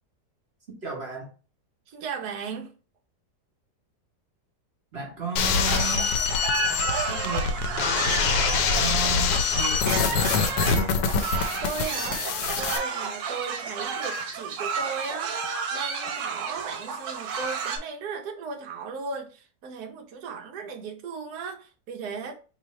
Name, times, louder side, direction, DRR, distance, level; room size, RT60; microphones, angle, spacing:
voice 1, 0.8-1.3 4.9-6.1 7.0-10.6, right 4 dB, 40° right, 1.2 m, -35 dB
voice 2, 1.9-2.7 11.6-12.2 12.6-15.3 15.7-22.4, right 5 dB, 65° right, 1.2 m, -36 dB
sound 1, 5.4-12.8, left 6 dB, 75° left, 1.0 m, -25 dB
sound 2, 5.6-17.8, right 6 dB, 80° right, 1.4 m, -31 dB
3.1 x 3.0 x 4.0 m
omnidirectional pair, 1.9 m